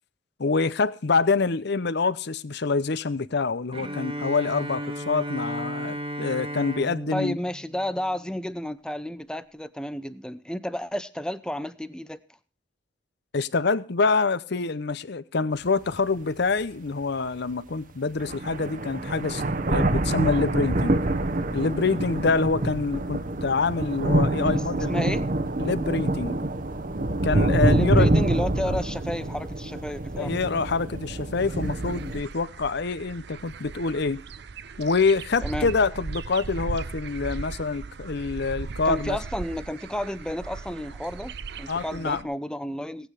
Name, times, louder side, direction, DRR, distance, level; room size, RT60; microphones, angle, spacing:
voice 1, 0.4-7.4 13.3-19.4 19.7-21.0 21.5-24.9 25.6-26.4 27.2-28.2 28.6-28.8 30.2-34.2 34.8-39.2 41.7-42.3, left 4 dB, 60° left, 0.7 m, -26 dB
Bowed string instrument, 3.7-8.7, equal, 30° right, 1.4 m, -35 dB
voice 2, 7.1-12.2 24.4-25.3 27.7-30.3 35.4-35.7 38.8-43.1, left 1 dB, 5° left, 0.6 m, -32 dB
sound 1, 15.7-15.8 16.4-16.5 17.8-17.9 18.2-32.2, right 1 dB, 45° right, 1.0 m, -26 dB
sound 2, 31.4-42.2, right 4 dB, 60° right, 0.6 m, -38 dB
17.5 x 9.2 x 4.8 m
head